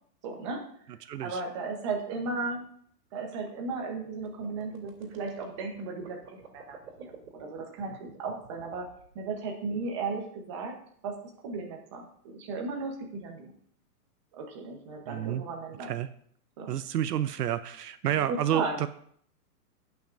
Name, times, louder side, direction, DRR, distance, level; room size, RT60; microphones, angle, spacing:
voice 1, 0.2-0.6 1.2-2.6 3.1-8.9 9.1-10.7 11.0-11.1 11.4-13.5 14.4-15.9 16.6-16.7 18.1-18.8, right 4 dB, 20° right, 1 dB, 0.9 m, -35 dB
voice 2, 1.0-1.4 15.1-15.4 15.8-16.1 16.7-18.9, right 11 dB, 75° right, 13 dB, 0.7 m, -30 dB
sound 1, 4.2-9.4, right 7 dB, 60° right, 2.7 m, -51 dB
17.5 x 5.9 x 2.6 m, 0.63 s
hypercardioid pair, 175°, 48 cm